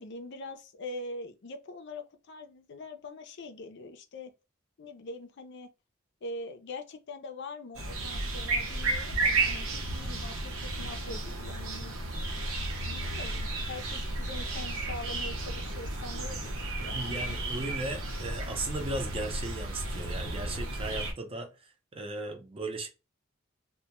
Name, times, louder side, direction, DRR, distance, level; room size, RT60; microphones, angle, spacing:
voice 1, 0.0-4.3 4.8-5.7 6.2-11.9 12.8-17.4, left 2 dB, 55° left, 0.5 m, -43 dB
sound 1, 7.7-21.1, right 2 dB, 85° right, 0.7 m, -33 dB
voice 2, 16.8-22.9, right 2 dB, 25° right, 0.5 m, -37 dB
2.2 x 2.1 x 2.9 m
head